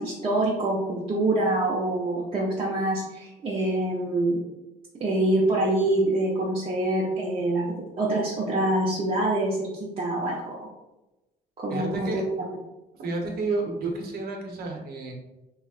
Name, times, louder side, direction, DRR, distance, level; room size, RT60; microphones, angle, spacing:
voice 1, 0.0-4.4 5.0-7.6 8.0-10.6 11.6-12.2, right 1 dB, 35° right, -6 dB, 0.7 m, -25 dB
voice 2, 11.7-12.2 13.0-15.1, right 3 dB, 65° right, 1 dB, 0.9 m, -30 dB
3.6 x 3.0 x 2.4 m, 1.0 s
cardioid pair, 110°, 17 cm